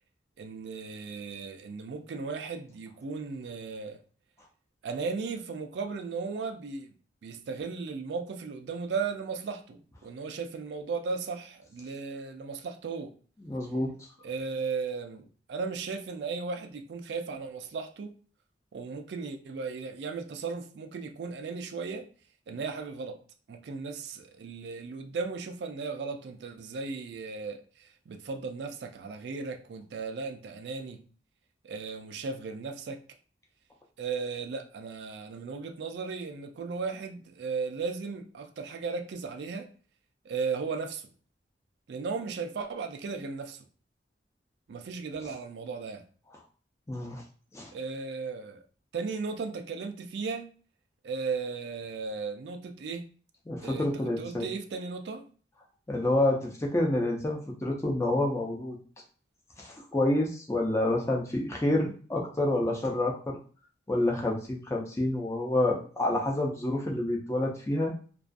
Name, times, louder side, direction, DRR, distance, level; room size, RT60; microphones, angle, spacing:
voice 1, 0.4-4.0 4.8-6.9 7.2-13.1 14.2-18.1 18.7-22.1 22.5-23.2 23.5-31.0 31.6-33.0 34.0-39.7 40.2-41.1 41.9-43.6 44.7-46.0 47.7-48.6 48.9-50.5 51.0-53.1 53.6-55.2, right 4 dB, 70° right, 0.3 m, -36 dB
voice 2, 13.4-13.9 46.9-47.2 47.5-47.7 53.5-54.5 55.9-58.8 59.6-63.4 63.9-67.9, left 1 dB, 15° left, 0.4 m, -28 dB
2.3 x 2.3 x 2.5 m
head